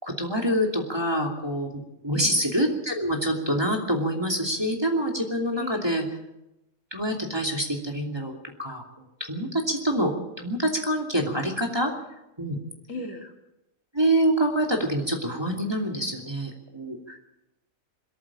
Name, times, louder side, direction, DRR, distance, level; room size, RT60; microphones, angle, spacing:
voice 1, 0.0-6.0 6.9-8.8 9.3-11.9 12.4-12.6 13.9-17.2, right 1 dB, 15° right, 1 dB, 2.8 m, -26 dB
voice 2, 5.5-6.0 12.9-13.3, left 2 dB, 65° left, 3 dB, 2.7 m, -36 dB
22.0 x 14.0 x 8.7 m, 0.92 s
omnidirectional pair, 1.5 m